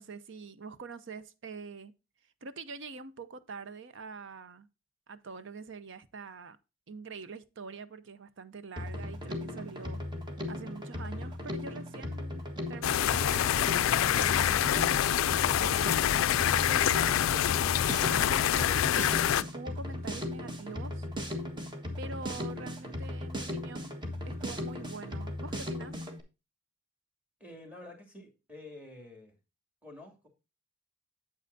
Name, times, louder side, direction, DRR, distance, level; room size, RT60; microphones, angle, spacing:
voice 1, 0.0-1.9 2.4-4.7 5.1-6.6 6.9-10.0 10.5-14.9 15.6-16.2 16.5-19.2 19.5-21.1 22.0-26.0, right 4 dB, 65° right, 0.7 m, -45 dB
Drum kit, 8.8-26.2, left 1 dB, 25° right, 1.5 m, -37 dB
sound 1, 12.8-19.4, left 11 dB, 80° left, 0.3 m, -26 dB
voice 2, 27.4-29.4 29.8-30.3, left 2 dB, 5° right, 2.5 m, -49 dB
8.5 x 8.0 x 2.6 m
head